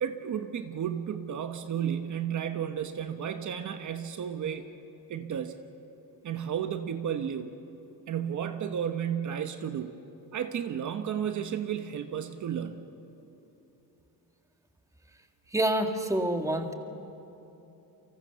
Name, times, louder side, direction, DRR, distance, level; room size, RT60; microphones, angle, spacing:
voice 1, 0.0-4.6 5.1-5.5 6.2-7.5 8.1-10.0 10.3-12.8, right 8 dB, 55° right, 8 dB, 1.2 m, -33 dB
voice 2, 15.5-16.7, right 1 dB, 10° right, 5 dB, 1.7 m, -27 dB
29.5 x 24.5 x 6.9 m, 3.0 s
cardioid pair, 140°, 37 cm